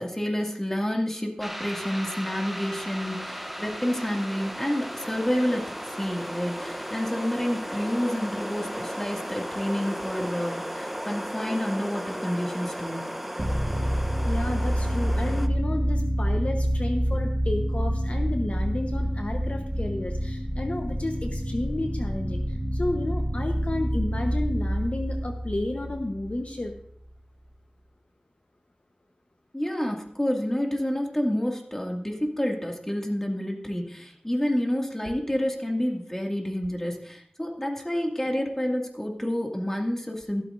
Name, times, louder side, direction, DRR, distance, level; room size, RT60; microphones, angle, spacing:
voice 1, 0.0-13.2 29.5-40.4, equal, 15° left, 1 dB, 2.2 m, -29 dB
sound 1, 1.4-15.5, equal, 5° right, 0.9 m, -35 dB
sound 2, 13.4-26.8, equal, 30° right, 1.4 m, -27 dB
voice 2, 14.2-26.7, left 1 dB, 55° left, 4 dB, 1.0 m, -32 dB
14.5 x 13.0 x 2.6 m, 0.65 s
wide cardioid pair, 55°, 3 cm